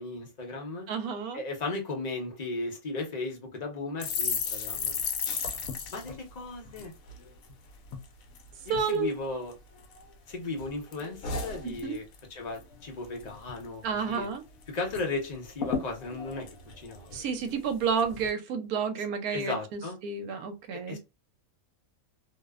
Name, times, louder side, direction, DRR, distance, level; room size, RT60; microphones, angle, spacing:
voice 1, 0.0-0.9 1.3-5.0 5.9-6.9 8.6-9.5 10.3-14.3 14.7-16.5 16.8-17.1 19.3-20.0 20.7-21.0, left 3 dB, 40° left, 0.7 m, -36 dB
voice 2, 0.9-1.4 8.7-9.4 11.6-12.0 13.8-14.4 17.1-21.0, right 6 dB, 75° right, 1.1 m, -31 dB
sound 1, 4.0-7.5 7.9-8.1 8.3-9.0 9.5-10.3 10.6-12.3 12.6-12.8 13.0-13.6 14.0-14.1 14.3-15.0 15.3-15.4 15.6-17.5 18.0-18.3, left 6 dB, 75° left, 1.0 m, -35 dB
2.7 x 2.0 x 2.3 m
omnidirectional pair, 1.6 m